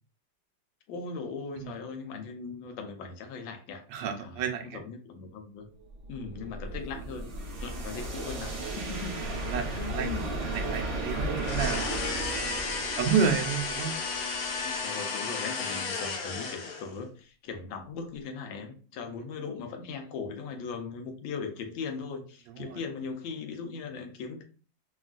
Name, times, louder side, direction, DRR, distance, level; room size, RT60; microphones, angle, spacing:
voice 1, 0.9-3.8 4.2-4.4 4.7-5.7 6.1-7.3 7.6-10.3 14.6-24.4, left 5 dB, 90° left, 5 dB, 1.4 m, -39 dB
voice 2, 3.9-4.8 9.2-9.6 9.9-10.1 10.3-13.9 22.5-22.8, right 6 dB, 75° right, 5 dB, 1.2 m, -31 dB
sound 1, 5.9-14.8, right 2 dB, 60° right, 0.8 m, -35 dB
sound 2, 11.4-17.0, left 4 dB, 70° left, 0.9 m, -33 dB
3.5 x 2.3 x 2.3 m, 0.38 s
omnidirectional pair, 2.1 m